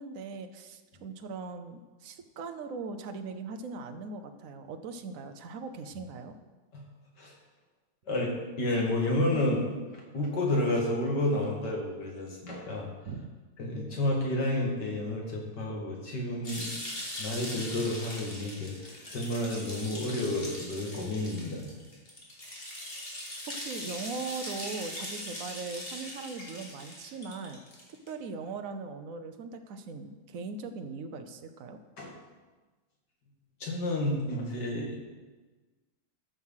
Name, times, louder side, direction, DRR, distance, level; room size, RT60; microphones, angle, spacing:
voice 1, 0.0-6.3 13.1-13.3 23.5-27.6 28.1-31.8, right 4 dB, 60° right, 7 dB, 0.9 m, -40 dB
voice 2, 8.1-12.9 13.6-16.7 17.2-21.7 32.0-32.1 33.6-35.0, left 1 dB, 55° left, -1 dB, 2.5 m, -30 dB
sound 1, 16.4-28.1, left 1 dB, 30° left, 2.2 m, -41 dB
13.5 x 6.3 x 5.6 m, 1.3 s
omnidirectional pair, 2.2 m